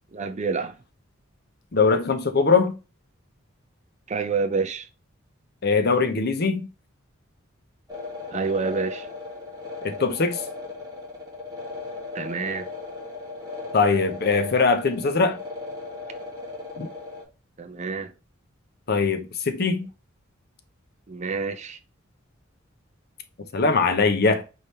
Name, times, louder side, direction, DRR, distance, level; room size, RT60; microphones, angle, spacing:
voice 1, 0.1-0.8 4.1-4.9 8.3-9.1 12.1-12.7 17.6-18.1 21.1-21.8, right 4 dB, 35° right, 0.5 m, -28 dB
voice 2, 1.7-2.8 5.6-6.7 9.8-10.4 13.7-15.4 16.8-16.9 18.9-19.9 23.5-24.4, left 4 dB, 50° left, 0.7 m, -21 dB
sound 1, 7.9-17.2, left 3 dB, 20° right, 1.3 m, -37 dB
4.8 x 3.2 x 2.7 m
head